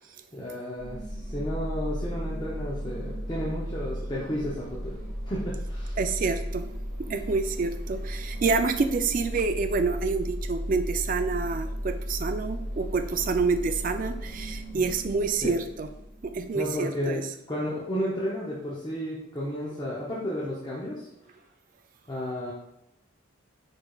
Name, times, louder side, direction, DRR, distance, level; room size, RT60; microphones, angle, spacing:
voice 1, 0.3-5.0 5.2-6.0 14.7-14.8 15.4-15.5 16.5-17.2 17.5-21.1 22.1-22.5, equal, 20° left, -6 dB, 0.6 m, -32 dB
sound 1, 0.7-16.7, equal, 40° left, 1.3 m, -35 dB
voice 2, 6.0-6.7 7.1-15.9 16.2-17.2, right 4 dB, 40° right, 7 dB, 0.3 m, -28 dB
4.9 x 4.5 x 2.3 m, 0.84 s
head